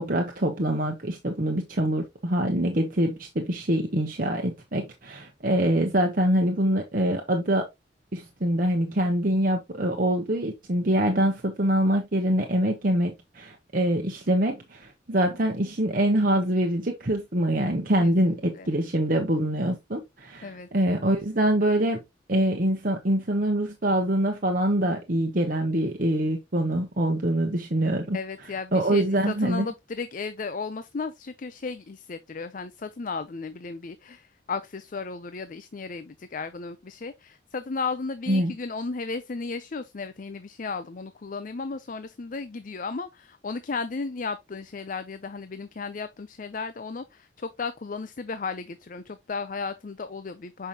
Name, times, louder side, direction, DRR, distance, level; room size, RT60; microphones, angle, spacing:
voice 1, 0.0-7.6 8.1-22.0 22.3-28.2 28.7-29.7 38.3-38.5, right 1 dB, 50° right, 1.0 m, -24 dB
voice 2, 18.0-18.7 20.4-20.7 28.1-50.7, left 4 dB, 45° left, 0.5 m, -34 dB
6.9 x 5.5 x 2.9 m
head